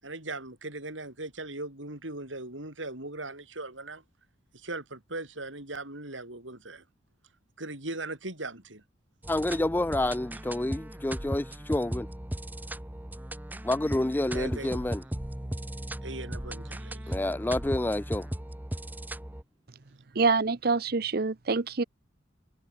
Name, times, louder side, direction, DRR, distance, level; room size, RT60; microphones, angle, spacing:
voice 1, 0.0-4.0 4.5-6.8 7.6-8.8 14.3-14.9 16.0-17.2, right 2 dB, 80° right, 7.7 m, -39 dB
sound 1, 9.2-19.4, right 1 dB, 10° right, 0.8 m, -37 dB
voice 2, 9.3-12.1 13.6-15.0 17.1-18.3, left 1 dB, 10° left, 0.3 m, -28 dB
voice 3, 20.1-21.8, right 4 dB, 50° right, 0.7 m, -26 dB
head